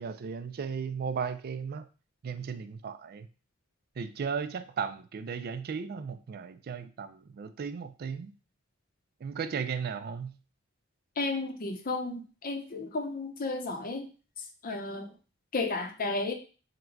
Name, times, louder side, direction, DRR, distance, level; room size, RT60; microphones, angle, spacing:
voice 1, 0.0-1.9 2.2-3.3 4.0-8.3 9.2-10.4, right 6 dB, 45° right, 0.4 m, -35 dB
voice 2, 11.2-14.1 14.6-15.1 15.5-16.3, left 3 dB, 45° left, 0.7 m, -33 dB
3.8 x 2.2 x 4.5 m
head